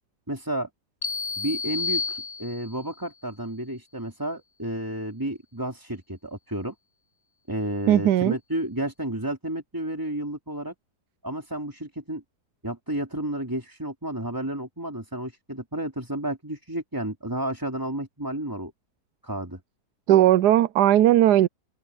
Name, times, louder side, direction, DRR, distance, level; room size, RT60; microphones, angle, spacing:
voice 1, 0.3-0.7 1.4-6.7 7.5-10.7 11.2-12.2 12.6-18.7 19.2-19.6, right 1 dB, 10° right, 2.9 m, -31 dB
sound 1, 1.0-2.9, left 4 dB, 40° left, 8.5 m, -30 dB
voice 2, 7.9-8.4 20.1-21.5, right 12 dB, 80° right, 1.2 m, -18 dB
open air
omnidirectional pair, 1.7 m